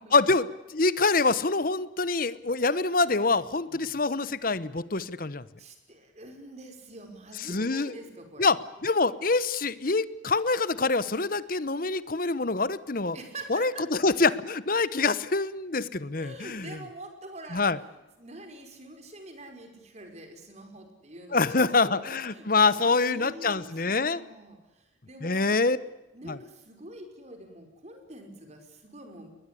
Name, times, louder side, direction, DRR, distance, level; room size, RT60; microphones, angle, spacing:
voice 1, 0.1-5.5 7.5-7.9 8.4-8.6 8.8-13.2 13.5-16.7 17.5-17.8 21.3-24.2 25.2-25.8 26.3-26.4, left 3 dB, 50° left, 16 dB, 1.1 m, -25 dB
voice 2, 5.6-8.6 13.1-13.9 16.1-29.3, right 1 dB, 35° right, 5 dB, 5.3 m, -46 dB
21.0 x 21.0 x 8.5 m, 1.0 s
head